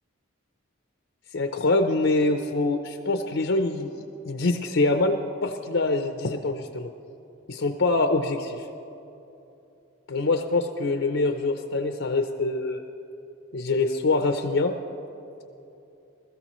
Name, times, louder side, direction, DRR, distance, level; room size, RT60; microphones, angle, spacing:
voice 1, 1.3-6.9 7.5-8.6 10.1-12.8 13.5-14.7, left 2 dB, 65° left, 6 dB, 0.6 m, -25 dB
20.5 x 14.0 x 3.1 m, 2.8 s
head